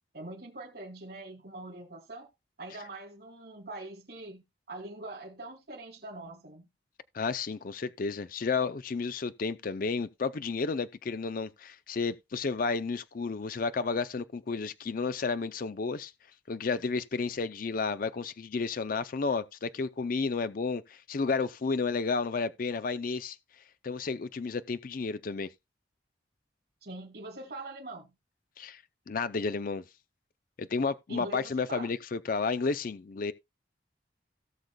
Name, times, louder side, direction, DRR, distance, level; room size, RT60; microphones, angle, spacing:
voice 1, 0.1-2.3 2.6-6.7 26.8-28.1 31.1-31.9, right 2 dB, 55° right, 2.7 m, -43 dB
voice 2, 7.1-16.1 16.5-23.4 23.8-25.5 28.6-28.8 29.1-29.8 30.6-33.3, left 4 dB, 50° left, 0.5 m, -32 dB
17.5 x 6.5 x 2.2 m
head